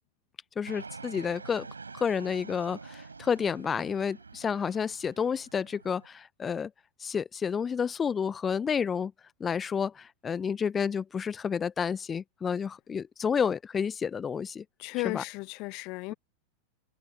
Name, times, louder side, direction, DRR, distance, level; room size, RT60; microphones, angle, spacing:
voice 1, 0.6-1.7 1.9-6.7 7.0-9.1 9.4-14.6 15.0-15.2, left 6 dB, 20° left, 0.8 m, -30 dB
Fixed-wing aircraft airplane, 0.7-6.1, right 4 dB, 80° right, 5.4 m, -46 dB
voice 2, 14.8-16.1, left 26 dB, 40° left, 1.4 m, -34 dB
figure-of-eight pair, 90°, 0 cm